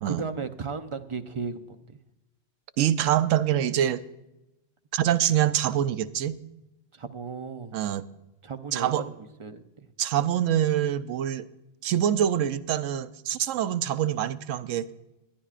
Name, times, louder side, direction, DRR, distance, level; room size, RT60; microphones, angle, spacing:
voice 1, 0.0-1.8 6.9-7.7 8.4-9.0 9.4-9.9, right 5 dB, 45° right, 8 dB, 0.4 m, -35 dB
voice 2, 2.8-4.0 4.9-6.4 7.7-8.0 8.7-9.1 10.0-11.5 11.8-14.9, right 11 dB, 90° right, 14 dB, 0.9 m, -25 dB
20.0 x 11.5 x 2.4 m, 0.94 s
omnidirectional pair, 1.3 m